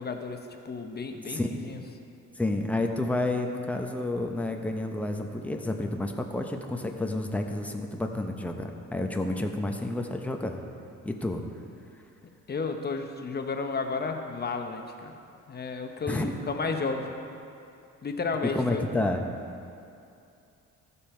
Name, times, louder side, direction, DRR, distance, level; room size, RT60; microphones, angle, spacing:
voice 1, 0.0-1.8 12.5-15.1 15.5-17.1 18.0-18.8, left 4 dB, 35° left, 4 dB, 0.9 m, -32 dB
voice 2, 1.3-1.7 2.4-10.6 11.0-11.4 16.1-16.3 18.5-19.2, left 2 dB, 5° left, 3 dB, 0.8 m, -30 dB
14.5 x 5.5 x 4.4 m, 2.6 s
cardioid pair, 90°, 30 cm